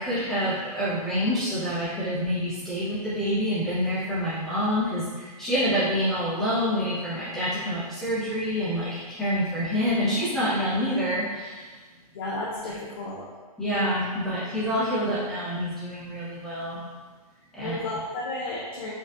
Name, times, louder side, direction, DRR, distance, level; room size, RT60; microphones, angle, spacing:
voice 1, 0.0-11.6 13.6-16.8 17.5-17.8, equal, ahead, -12 dB, 0.7 m, -27 dB
voice 2, 12.1-13.3 17.6-18.9, left 2 dB, 35° left, -5 dB, 0.5 m, -32 dB
4.6 x 2.4 x 2.4 m, 1.3 s
hypercardioid pair, 165°, 20 cm